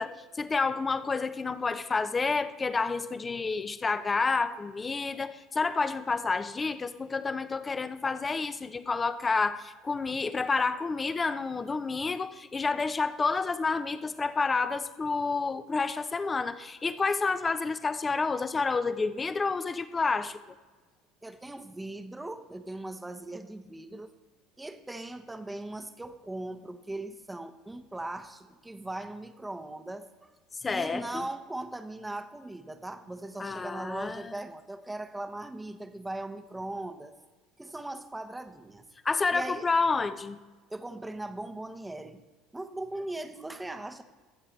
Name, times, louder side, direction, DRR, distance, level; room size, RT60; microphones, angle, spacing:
voice 1, 0.0-20.4 30.6-31.3 33.4-34.3 39.0-40.4, left 4 dB, 25° left, 0.8 m, -29 dB
voice 2, 21.2-24.1 24.6-30.3 30.7-37.1 37.6-38.9 39.3-39.7 40.7-42.2 42.5-44.0, right 2 dB, 10° right, 1.0 m, -39 dB
22.0 x 7.7 x 3.3 m
hypercardioid pair, 70°, 0 cm